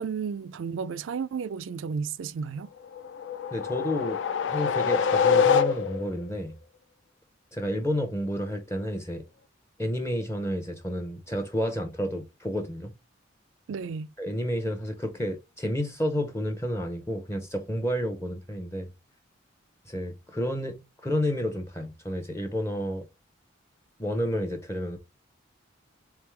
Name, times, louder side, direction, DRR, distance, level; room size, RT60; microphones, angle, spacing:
voice 1, 0.0-2.7 13.7-14.1, right 6 dB, 80° right, 0.4 m, -32 dB
sound 1, 2.9-6.2, left 6 dB, 70° left, 0.4 m, -24 dB
voice 2, 3.5-6.5 7.5-9.2 9.8-12.9 14.2-18.9 19.9-23.1 24.0-25.0, equal, 15° left, 0.6 m, -30 dB
3.8 x 3.4 x 3.2 m
head